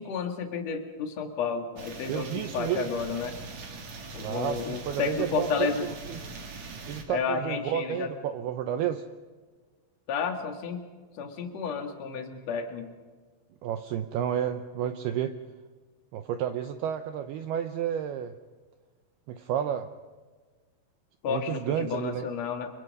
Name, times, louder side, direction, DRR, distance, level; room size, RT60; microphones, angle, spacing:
voice 1, 0.0-3.4 4.1-5.9 7.1-8.1 10.1-10.9 11.2-12.9 21.2-22.7, left 6 dB, 50° left, 4 dB, 2.3 m, -31 dB
sound 1, 1.8-7.0, right 3 dB, 45° right, 3.0 m, -42 dB
voice 2, 2.1-2.9 4.2-6.2 6.9-9.1 13.6-15.4 16.1-18.4 19.3-19.9 21.3-22.3, right 10 dB, 85° right, 8 dB, 2.2 m, -31 dB
30.0 x 24.0 x 5.5 m, 1.4 s
omnidirectional pair, 5.7 m